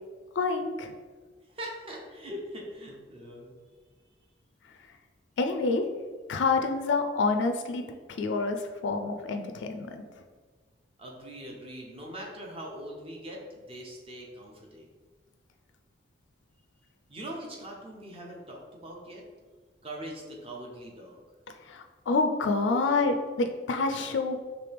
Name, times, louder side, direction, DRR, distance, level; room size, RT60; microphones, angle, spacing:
voice 1, 0.4-0.9 5.4-5.8 6.3-7.8 8.2-10.0 21.7-24.4, left 3 dB, 70° left, 5 dB, 0.4 m, -27 dB
voice 2, 1.5-3.6 11.0-14.9 17.1-19.2 19.8-21.2, right 1 dB, 30° right, 0 dB, 0.8 m, -42 dB
4.9 x 3.2 x 3.3 m, 1.5 s
head